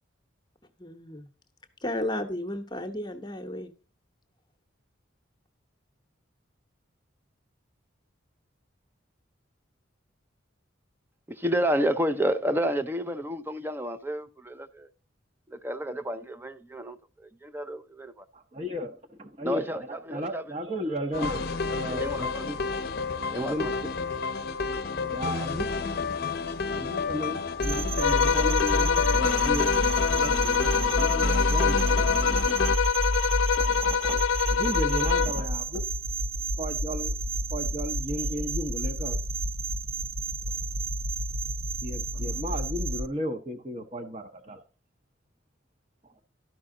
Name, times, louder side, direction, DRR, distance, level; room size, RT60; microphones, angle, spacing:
voice 1, 0.8-1.3 1.8-3.7 30.6-30.7, left 1 dB, 20° left, 0.9 m, -33 dB
voice 2, 11.3-14.9 15.5-17.0 17.4-18.2 19.4-20.4 21.2-21.3 21.7-22.5 23.3-23.7 25.3-25.4, equal, 10° right, 0.5 m, -30 dB
voice 3, 18.3-22.6 23.3-23.9 24.7-25.7 26.7-29.7 30.1-32.5 33.5-35.8 36.6-37.1 37.5-39.2 41.8-44.6, equal, 30° right, 0.8 m, -35 dB
sound 1, 21.1-32.8, left 4 dB, 50° left, 0.7 m, -31 dB
sound 2, 27.6-43.1, right 1 dB, 80° right, 0.8 m, -29 dB
sound 3, 28.0-35.5, left 7 dB, 85° left, 0.5 m, -25 dB
12.5 x 5.5 x 3.7 m
head